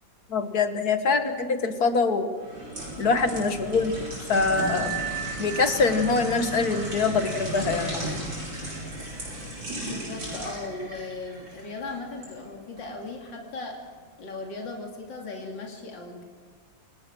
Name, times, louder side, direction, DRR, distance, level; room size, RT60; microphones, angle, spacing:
voice 1, 0.3-2.3 3.0-4.0 4.3-5.0 5.4-8.2, left 4 dB, 55° left, 8 dB, 1.8 m, -24 dB
sound 1, 2.4-12.3 12.8-13.0, right 1 dB, 85° right, 7.6 m, -35 dB
Bell, 4.6-10.0, right 10 dB, 35° left, 6.4 m, -39 dB
voice 2, 9.8-13.8 14.2-16.2, left 3 dB, 75° left, 1 dB, 3.4 m, -37 dB
28.5 x 18.0 x 6.1 m, 1.5 s
omnidirectional pair, 2.0 m